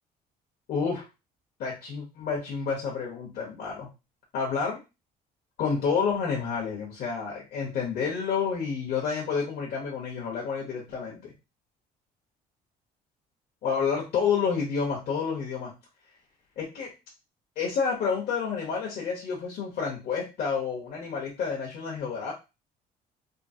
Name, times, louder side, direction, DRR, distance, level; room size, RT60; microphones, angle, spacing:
voice 1, 0.7-1.0 1.6-3.9 4.3-4.8 5.6-11.3 13.6-15.7 16.6-16.9 17.6-22.3, left 6 dB, 65° left, -3 dB, 1.0 m, -29 dB
3.7 x 2.0 x 2.7 m, 0.27 s
cardioid pair, 110°, 17 cm